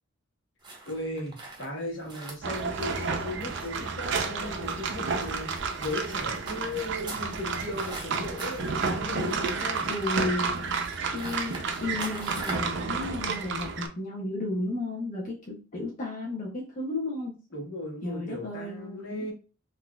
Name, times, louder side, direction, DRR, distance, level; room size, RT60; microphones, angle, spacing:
sound 1, 0.6-12.8, right 2 dB, 20° right, 0.8 m, -44 dB
voice 1, 0.9-9.9 17.5-19.3, left 1 dB, 65° left, 0 dB, 1.2 m, -37 dB
sound 2, 2.4-13.9, right 4 dB, 65° right, 0.5 m, -31 dB
voice 2, 9.9-10.7 11.1-17.4 18.0-19.3, left 2 dB, 40° left, -3 dB, 0.7 m, -33 dB
4.0 x 2.6 x 2.2 m, 0.33 s
head